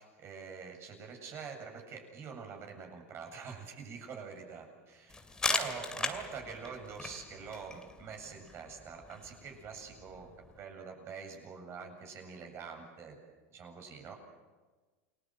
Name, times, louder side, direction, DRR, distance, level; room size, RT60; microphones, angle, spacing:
voice 1, 0.0-5.2 5.5-10.3 10.6-13.2 13.5-14.2, right 6 dB, 35° right, 3 dB, 7.6 m, -45 dB
sound 1, 5.1-10.6, left 3 dB, 10° left, 2.5 m, -39 dB
29.0 x 21.5 x 7.8 m, 1.3 s
supercardioid pair, 125°, 7 cm